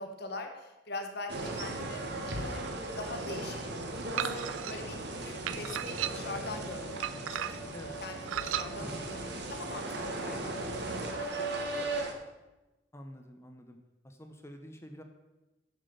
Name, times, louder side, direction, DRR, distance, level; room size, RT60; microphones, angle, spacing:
voice 1, 0.0-2.6 3.0-3.6 4.1-7.6 8.0-9.2 9.5-11.9, left 3 dB, 55° left, 4 dB, 1.2 m, -43 dB
sound 1, 1.3-12.1, right 2 dB, 60° right, 1.3 m, -37 dB
sound 2, 4.2-4.7 5.5-6.4 7.0-7.8 8.3-8.7, right 11 dB, 90° right, 0.4 m, -34 dB
voice 2, 12.9-13.8 14.0-15.0, equal, 15° left, 5 dB, 0.7 m, -47 dB
7.4 x 7.2 x 6.7 m, 1.1 s
head